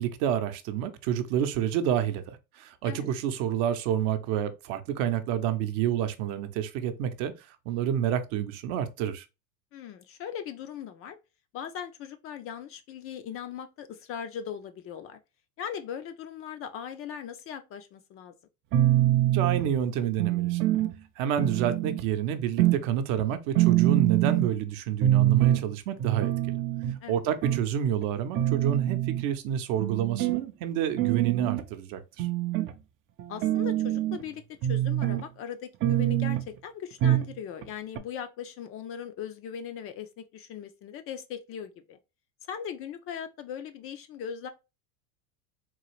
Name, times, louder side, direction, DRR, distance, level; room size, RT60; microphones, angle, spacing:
voice 1, 0.0-9.2 19.3-20.6 21.2-26.6 27.1-32.3, right 9 dB, 60° right, 0.7 m, -29 dB
voice 2, 9.7-11.2 11.5-15.2 15.6-18.3 27.0-27.2 33.3-42.0 42.5-44.5, left 8 dB, 35° left, 0.4 m, -39 dB
sound 1, 18.7-19.7 20.2-20.9 21.4-22.0 22.6-22.9 23.2-23.3 23.5-24.5 25.0-25.6 26.0-27.0 27.4-27.6 28.0-28.1 28.3-29.2 29.8-30.4 31.0-31.6 32.2-32.7 33.2-34.2 34.6-35.2 35.8-36.4 37.0-37.3 37.6-37.7 37.9-38.0, right 14 dB, 30° right, 0.4 m, -25 dB
3.9 x 2.4 x 3.0 m
supercardioid pair, 110°, 41 cm